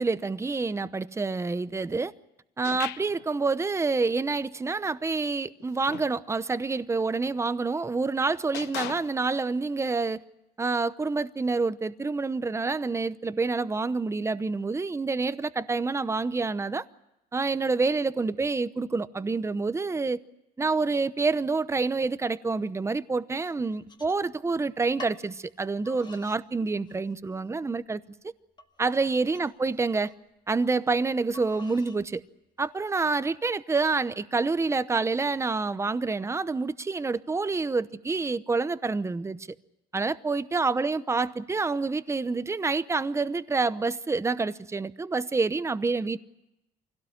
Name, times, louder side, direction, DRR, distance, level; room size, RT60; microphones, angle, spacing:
voice 1, 0.0-2.1 2.6-10.2 10.6-16.8 17.3-20.2 20.6-28.0 28.8-30.1 30.5-32.2 32.6-39.4 39.9-46.2, right 3 dB, 15° right, 0.9 m, -27 dB
sound 1, 2.6-3.3 5.6-6.2 7.3-7.5 8.5-9.4, left 13 dB, 80° left, 0.9 m, -38 dB
sound 2, 23.3-24.6 25.0-25.2 25.8-26.4 26.9-27.4 27.9-28.0 28.6-30.2 31.3-32.0 32.6-33.1, left 3 dB, 25° left, 1.8 m, -49 dB
24.5 x 17.0 x 9.9 m
cardioid pair, 110°, 17 cm